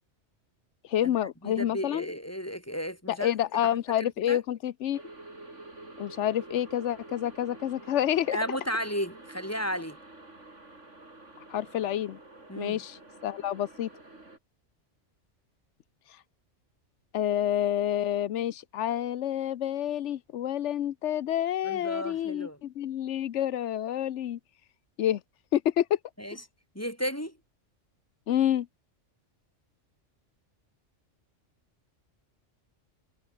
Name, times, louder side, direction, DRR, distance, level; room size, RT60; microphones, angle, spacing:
voice 1, 0.9-2.1 3.1-5.0 6.0-8.4 11.5-12.2 12.6-13.9 17.1-24.4 25.0-25.2 25.5-26.0 28.3-28.7, left 11 dB, 75° left, 1.0 m, -28 dB
voice 2, 1.4-3.3 3.6-4.4 8.3-10.0 12.5-12.8 21.6-22.6 26.2-26.4 26.8-27.4, equal, 10° left, 5.5 m, -34 dB
sound 1, 4.9-14.4, right 2 dB, 85° right, 5.4 m, -48 dB
omnidirectional pair, 1.2 m